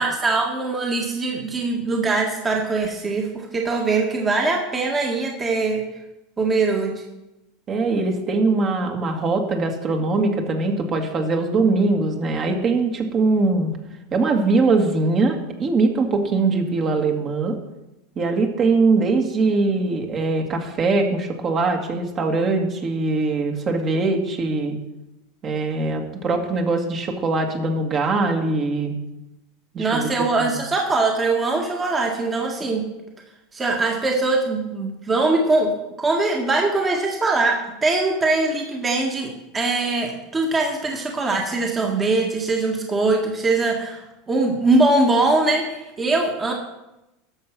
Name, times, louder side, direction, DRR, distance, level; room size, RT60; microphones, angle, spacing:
voice 1, 0.0-5.8 6.4-7.0 29.8-32.8 33.5-35.7 36.0-46.5, right 3 dB, 20° right, 1 dB, 1.8 m, -22 dB
voice 2, 7.7-13.7 14.1-17.6 18.2-24.8 25.4-28.9 29.7-30.1 30.4-30.6, right 3 dB, 35° right, 3 dB, 2.0 m, -21 dB
12.0 x 6.7 x 6.0 m, 0.95 s
supercardioid pair, 110°, 0 cm